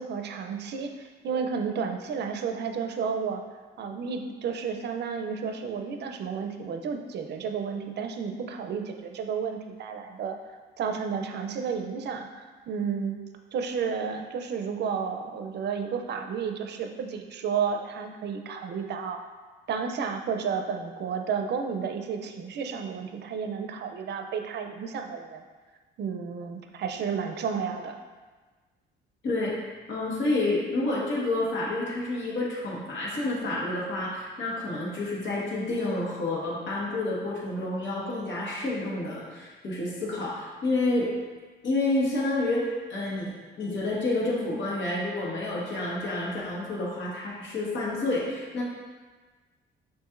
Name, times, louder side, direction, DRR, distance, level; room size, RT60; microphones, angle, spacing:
voice 1, 0.0-3.4 3.8-10.4 10.8-13.2 13.5-19.3 19.7-25.4 26.0-28.0, right 6 dB, 60° right, 5 dB, 0.5 m, -32 dB
voice 2, 29.2-41.1 41.6-48.6, left 2 dB, 70° left, -5 dB, 1.3 m, -29 dB
6.9 x 2.6 x 2.5 m, 1.4 s
cardioid pair, 90°, 20 cm